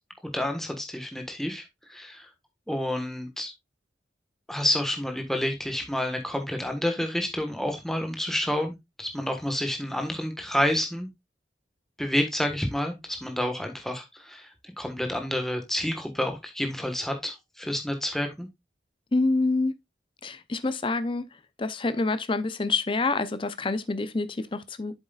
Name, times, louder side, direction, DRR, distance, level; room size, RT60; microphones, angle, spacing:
voice 1, 0.2-1.6 1.9-2.3 2.7-3.5 4.5-11.1 12.0-14.5 14.8-18.5, left 1 dB, ahead, 1.4 m, -29 dB
voice 2, 19.1-19.7 20.2-21.3 21.6-25.0, left 3 dB, 30° left, 0.6 m, -27 dB
8.0 x 7.3 x 2.4 m
head